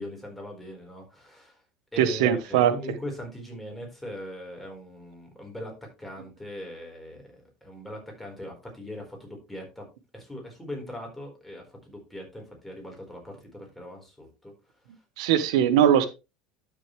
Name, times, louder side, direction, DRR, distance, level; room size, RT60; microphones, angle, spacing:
voice 1, 0.0-1.6 1.9-5.7 6.0-7.3 7.6-9.8 10.1-14.5 15.3-15.4, left 1 dB, 5° left, 1 dB, 4.3 m, -40 dB
voice 2, 2.0-2.7 15.2-16.1, right 10 dB, 85° right, 12 dB, 1.1 m, -20 dB
12.0 x 6.7 x 3.2 m, 0.28 s
supercardioid pair, 130°, 3 cm